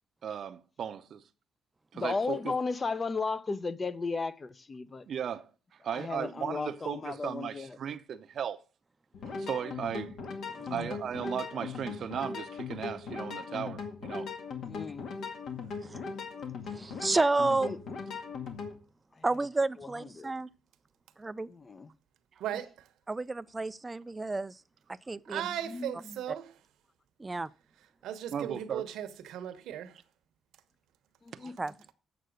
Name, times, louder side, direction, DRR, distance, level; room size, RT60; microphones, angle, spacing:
voice 1, 0.2-1.2 1.9-2.5 5.1-8.6 9.2-10.2 10.7-14.3 28.3-28.8 31.4-31.5, right 8 dB, 60° right, 0.7 m, -36 dB
voice 2, 1.9-5.0 5.9-7.8 10.6-10.9 14.6-15.1 17.6-17.8 19.2-19.3 19.8-20.3 21.5-21.9 25.4-26.2 31.2-31.5, left 4 dB, 30° left, 0.7 m, -35 dB
sound 1, 9.1-18.7, left 5 dB, 70° left, 2.1 m, -39 dB
voice 3, 15.6-15.9 22.4-22.9 25.3-26.5 28.0-30.0, right 10 dB, 85° right, 1.1 m, -37 dB
voice 4, 16.7-17.7 19.2-20.5 21.2-21.5 23.1-24.6 25.1-25.5 27.2-27.5 31.6-31.7, right 3 dB, 20° right, 0.4 m, -30 dB
8.1 x 6.7 x 6.4 m
cardioid pair, 90°, 0 cm